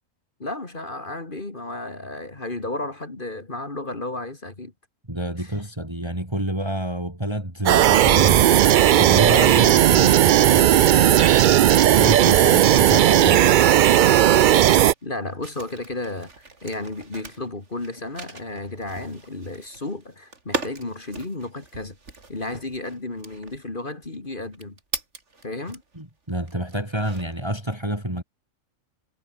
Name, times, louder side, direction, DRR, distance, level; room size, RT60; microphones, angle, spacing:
voice 1, 0.4-4.7 5.4-5.5 12.4-12.6 15.0-22.0 22.3-24.8 25.4-25.8, left 2 dB, 40° left, 2.8 m, -33 dB
voice 2, 5.1-8.7 9.0-11.3 11.9-13.8 25.9-28.2, right 1 dB, 20° right, 4.8 m, -28 dB
sound 1, 7.7-14.9, right 11 dB, 90° right, 0.4 m, -15 dB
sound 2, 14.3-26.0 26.5-27.5, right 3 dB, 60° right, 3.3 m, -39 dB
omnidirectional pair, 1.4 m